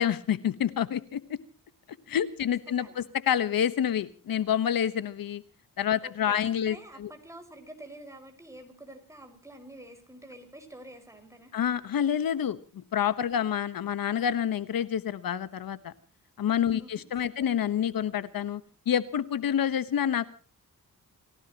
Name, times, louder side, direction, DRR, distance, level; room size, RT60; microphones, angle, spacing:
voice 1, 0.0-1.4 2.1-5.4 5.8-7.1 11.5-15.9 16.4-18.6 18.9-20.3, left 9 dB, 80° left, 14 dB, 1.3 m, -28 dB
voice 2, 2.8-3.1 6.0-11.5 13.4-13.5 16.8-17.4, right 1 dB, 10° right, 5 dB, 5.2 m, -48 dB
29.0 x 16.5 x 3.0 m, 0.39 s
wide cardioid pair, 120°, 34 cm